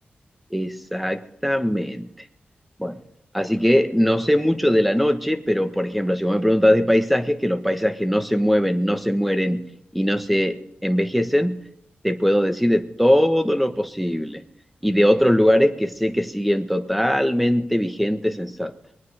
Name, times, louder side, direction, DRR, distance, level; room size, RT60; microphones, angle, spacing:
voice 1, 0.5-2.1 2.8-3.0 3.3-9.6 9.9-11.6 12.0-14.4 14.8-18.7, equal, ahead, 8 dB, 1.3 m, -20 dB
23.0 x 9.1 x 4.9 m, 0.75 s
wide cardioid pair, 75°, 4 cm